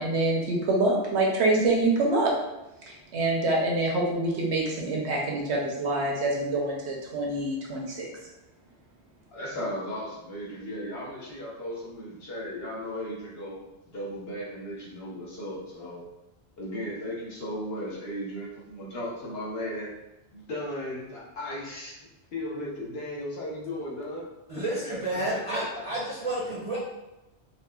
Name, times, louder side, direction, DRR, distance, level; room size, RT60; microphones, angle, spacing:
voice 1, 0.0-2.4 2.9-8.1, right 2 dB, 75° right, -2 dB, 1.0 m, -26 dB
voice 2, 9.3-16.0 16.6-19.9 20.3-22.0 22.3-24.3 25.3-25.8, left 1 dB, 65° left, -4 dB, 1.1 m, -36 dB
voice 3, 24.5-26.8, right 1 dB, 35° right, -8 dB, 0.6 m, -30 dB
4.0 x 2.1 x 2.2 m, 0.97 s
omnidirectional pair, 1.1 m